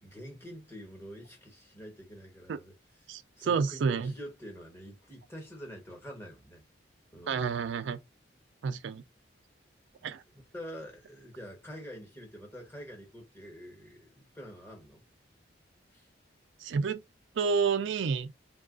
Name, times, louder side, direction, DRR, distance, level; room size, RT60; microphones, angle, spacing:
voice 1, 0.0-2.7 3.4-6.6 7.1-7.6 10.0-15.0 15.9-16.1, equal, 10° left, 1.2 m, -46 dB
voice 2, 3.1-4.1 7.3-8.0 8.6-9.0 10.0-10.2 16.6-17.0 17.4-18.3, right 5 dB, 70° right, 0.4 m, -29 dB
2.9 x 2.4 x 3.6 m
head